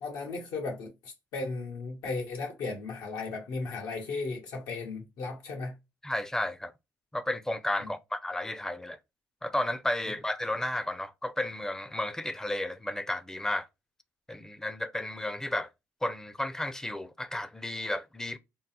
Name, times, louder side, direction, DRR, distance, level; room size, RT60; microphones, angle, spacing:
voice 1, 0.0-5.7 7.8-7.9, left 3 dB, 90° left, 1.2 m, -36 dB
voice 2, 6.0-6.7 7.1-9.0 9.4-13.7 14.3-15.7 16.0-18.4, left 1 dB, 10° left, 0.4 m, -33 dB
3.8 x 2.0 x 4.1 m
cardioid pair, 100°, 7 cm